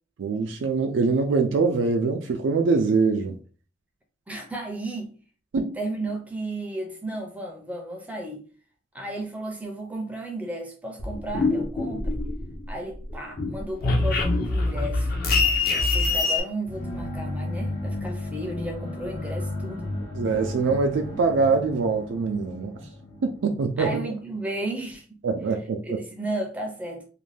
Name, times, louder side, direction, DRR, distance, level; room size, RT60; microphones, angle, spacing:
voice 1, 0.2-3.4 5.5-5.7 20.1-22.8 23.2-24.0 25.2-26.0, right 4 dB, 85° right, 0.3 m, -23 dB
voice 2, 4.3-5.1 5.7-8.5 8.9-12.2 12.7-15.1 15.7-19.9 22.8-22.9 23.8-25.2 25.8-27.1, right 1 dB, 10° right, 0.4 m, -34 dB
sound 1, 11.0-12.7 13.0-16.4, left 3 dB, 50° left, 0.6 m, -24 dB
sound 2, 16.6-24.4, left 1 dB, 70° left, 1.2 m, -34 dB
2.5 x 2.1 x 3.2 m
head